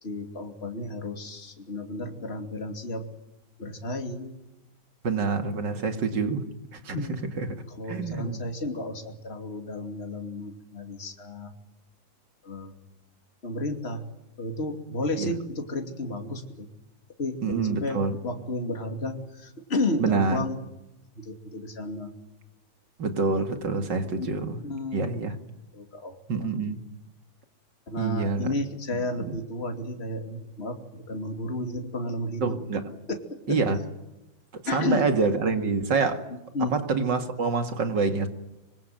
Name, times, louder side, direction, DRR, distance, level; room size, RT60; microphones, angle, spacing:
voice 1, 0.0-3.0 3.6-4.3 5.8-5.9 6.9-7.3 7.7-11.5 12.4-12.7 13.4-14.0 14.4-16.7 17.2-20.6 21.1-22.1 24.2-24.3 24.6-25.0 25.7-26.5 27.9-32.6 33.1-33.2 33.5-33.6 34.7-35.1 36.5-36.7, left 1 dB, 30° left, 2.9 m, -32 dB
voice 2, 5.0-6.4 6.7-7.0 7.4-7.5 7.9-8.4 15.2-15.3 17.4-18.2 20.0-20.4 23.0-24.6 24.9-25.4 26.3-26.8 28.0-28.5 29.2-29.4 32.4-32.9 33.5-33.8 34.5-36.2 36.7-38.3, right 4 dB, 60° right, 2.8 m, -26 dB
25.5 x 24.5 x 9.2 m
omnidirectional pair, 2.2 m